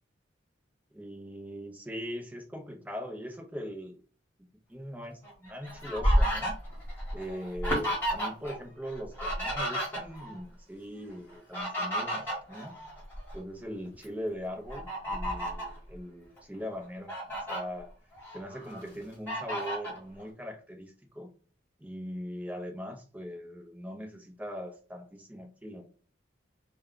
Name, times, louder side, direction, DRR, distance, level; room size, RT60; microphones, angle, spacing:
voice 1, 0.9-4.0 4.7-6.6 7.1-12.8 13.3-17.2 17.5-17.9 18.3-21.3 21.8-25.9, equal, 10° right, 2 dB, 0.5 m, -40 dB
Fowl, 5.2-8.6 8.8-10.4 11.3-13.4 13.9-14.0 14.7-15.8 16.4-16.5 16.8-17.6 18.1-18.8 19.3-20.0, equal, 10° left, 1.1 m, -31 dB
2.3 x 2.2 x 3.6 m, 0.39 s
head